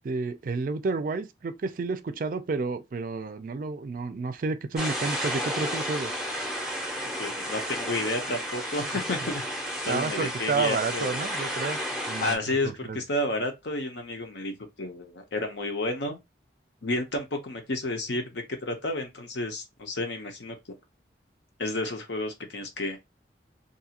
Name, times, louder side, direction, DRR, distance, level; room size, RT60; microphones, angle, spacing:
voice 1, 0.0-6.1 9.9-11.8 12.1-12.4 12.6-13.0, right 4 dB, 50° right, 0.4 m, -30 dB
sound 1, 4.8-12.4, equal, 5° right, 0.6 m, -32 dB
voice 2, 7.2-9.4 9.8-11.1 12.2-16.2 16.8-20.6 21.6-23.0, left 2 dB, 80° left, 0.8 m, -31 dB
2.7 x 2.4 x 2.8 m
head